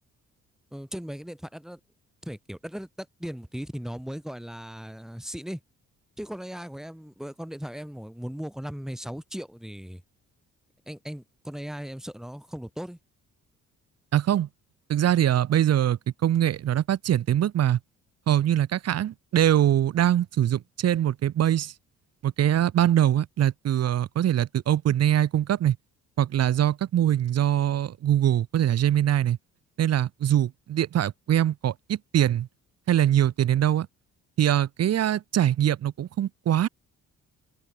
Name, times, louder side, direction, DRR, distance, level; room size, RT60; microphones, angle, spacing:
voice 1, 0.7-1.8 2.2-5.6 6.2-10.0 10.9-13.0, equal, ahead, 5.6 m, -37 dB
voice 2, 14.1-14.5 14.9-17.8 18.3-21.7 22.2-25.8 26.2-29.4 29.8-32.5 32.9-33.9 34.4-36.7, right 11 dB, 55° right, 1.0 m, -23 dB
cardioid pair, 90°, 30 cm